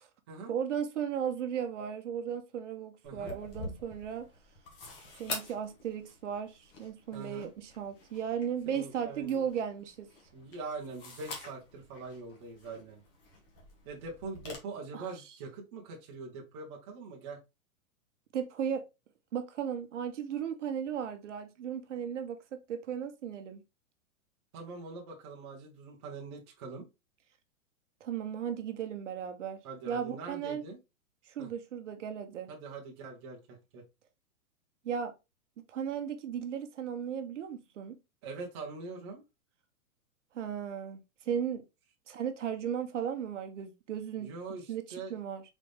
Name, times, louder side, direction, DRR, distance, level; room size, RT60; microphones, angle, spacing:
voice 1, 0.5-4.3 5.2-10.1 14.9-15.1 18.3-18.8 19.3-23.6 28.0-29.6 29.8-30.6 31.3-32.5 34.8-35.1 35.7-38.0 40.3-41.6 42.1-44.3 44.7-45.4, right 8 dB, 55° right, 0.8 m, -36 dB
sound 1, 3.0-14.6, left 2 dB, 40° left, 1.3 m, -47 dB
voice 2, 3.0-3.4 7.1-7.5 8.7-9.4 10.3-13.0 13.9-17.4 24.5-26.9 29.6-30.8 31.4-31.5 32.5-33.8 38.2-39.2 44.2-45.1, right 3 dB, 20° right, 0.7 m, -43 dB
4.1 x 3.4 x 3.1 m
supercardioid pair, 175°, 43 cm